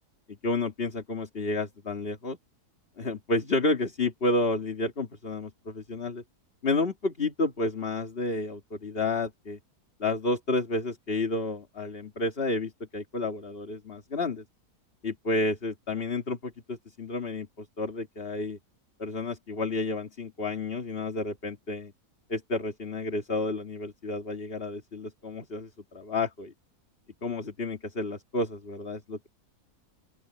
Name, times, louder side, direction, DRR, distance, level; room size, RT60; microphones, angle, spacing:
voice 1, 0.3-2.4 3.0-6.2 6.6-9.6 10.0-14.4 15.0-18.6 19.0-21.9 22.3-26.5 27.2-29.3, left 2 dB, 35° left, 2.4 m, -31 dB
open air
omnidirectional pair, 1.7 m